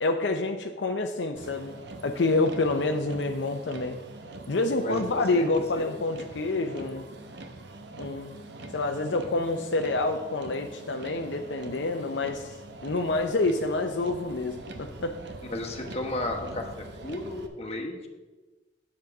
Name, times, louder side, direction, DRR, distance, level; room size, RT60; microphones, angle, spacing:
voice 1, 0.0-1.8 2.0-4.0 4.5-7.1 8.0-8.4 8.7-12.5 12.8-15.2, left 2 dB, 75° left, 4 dB, 0.6 m, -27 dB
Motor vehicle (road), 1.4-17.5, right 2 dB, 70° right, 0.9 m, -44 dB
voice 2, 4.8-5.4 5.8-5.9 15.4-16.7 17.0-18.1, left 2 dB, 35° left, 2 dB, 1.3 m, -33 dB
9.3 x 7.4 x 4.8 m, 1.2 s
head